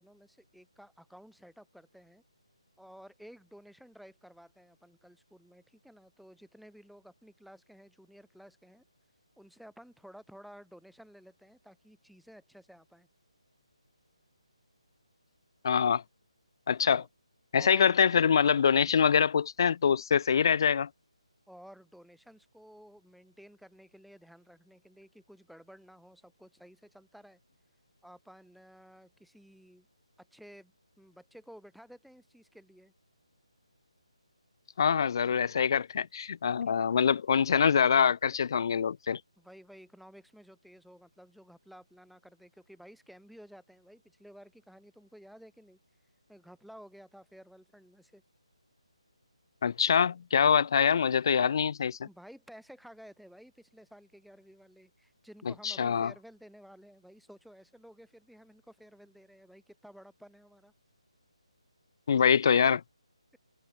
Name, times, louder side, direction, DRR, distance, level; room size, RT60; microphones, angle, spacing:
voice 1, 0.0-2.2 2.8-8.8 9.4-13.1 17.6-18.0 21.5-27.4 28.0-29.9 30.2-32.9 36.6-37.0 39.4-45.8 46.3-48.2 52.0-60.7, equal, ahead, 4.3 m, -54 dB
voice 2, 15.6-16.0 16.7-17.0 17.5-20.9 34.8-39.2 49.6-52.0 55.6-56.1 62.1-62.8, left 7 dB, 40° left, 1.8 m, -24 dB
hypercardioid pair, 165°, 3 cm